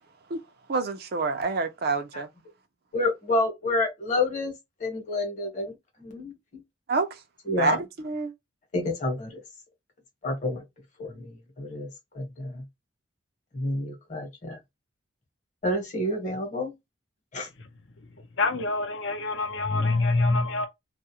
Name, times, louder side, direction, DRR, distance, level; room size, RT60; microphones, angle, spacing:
voice 1, 0.7-2.3 6.9-7.1 7.6-8.3, right 3 dB, 50° right, 0.4 m, -27 dB
voice 2, 2.9-4.5 4.8-5.7 6.0-6.6 7.5-7.8 8.7-9.4 10.2-10.6 11.0-11.3 11.6-11.9 12.1-12.6 13.5-14.6 15.6-16.7 17.3-17.5, left 2 dB, 40° left, 1.0 m, -29 dB
voice 3, 18.4-20.7, left 3 dB, 65° left, 0.6 m, -25 dB
2.3 x 2.0 x 2.7 m
head